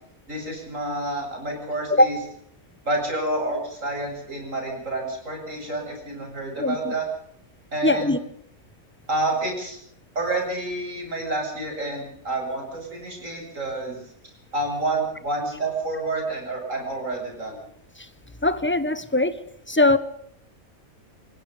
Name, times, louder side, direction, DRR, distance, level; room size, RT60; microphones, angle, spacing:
voice 1, 0.3-2.2 2.8-7.1 7.7-8.2 9.1-9.8 10.1-14.0 14.5-17.6, right 2 dB, 60° right, 8.3 m, -29 dB
voice 2, 6.6-6.9 7.8-8.2 18.0-18.1 18.4-19.4 19.7-20.0, left 2 dB, 10° left, 1.3 m, -20 dB
28.0 x 18.0 x 5.2 m
omnidirectional pair, 1.5 m